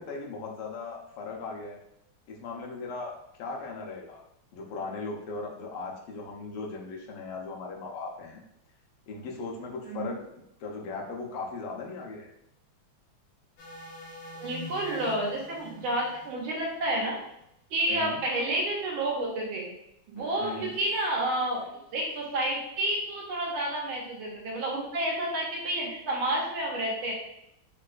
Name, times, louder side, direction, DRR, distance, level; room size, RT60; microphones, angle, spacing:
voice 1, 0.0-1.8 2.3-3.1 3.4-4.2 4.5-8.4 9.1-12.3 17.9-18.2 20.4-20.7, left 3 dB, 90° left, 0 dB, 1.6 m, -38 dB
sound 1, 13.6-17.4 20.2-21.7, left 2 dB, 65° left, 1.3 m, -47 dB
voice 2, 14.4-17.2 17.7-19.7 20.1-21.6 21.9-27.1, right 1 dB, 75° right, -2 dB, 1.6 m, -30 dB
4.2 x 2.2 x 2.4 m, 0.78 s
omnidirectional pair, 2.4 m